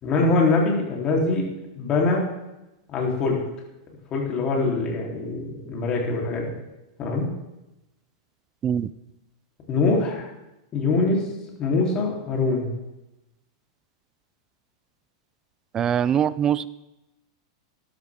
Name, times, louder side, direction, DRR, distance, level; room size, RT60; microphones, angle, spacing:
voice 1, 0.0-1.5 1.8-2.3 2.9-3.4 4.1-6.5 7.0-7.3 9.7-10.3 10.7-11.2 11.6-12.7, left 3 dB, 35° left, -1 dB, 3.6 m, -23 dB
voice 2, 15.7-16.7, right 9 dB, 25° right, 18 dB, 0.4 m, -22 dB
13.0 x 11.5 x 3.7 m, 0.95 s
hypercardioid pair, 125°, 2 cm